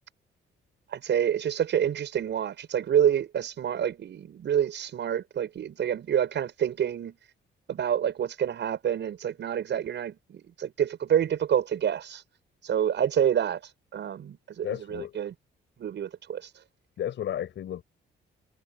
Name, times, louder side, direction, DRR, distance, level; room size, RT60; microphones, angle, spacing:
voice 1, 0.9-7.2 7.7-12.2 12.6-13.6 13.9-15.3 15.8-16.4, right 9 dB, 65° right, 8.0 m, -27 dB
voice 2, 14.6-15.1 17.0-17.8, left 10 dB, 70° left, 6.3 m, -33 dB
cardioid pair, 90°, 20 cm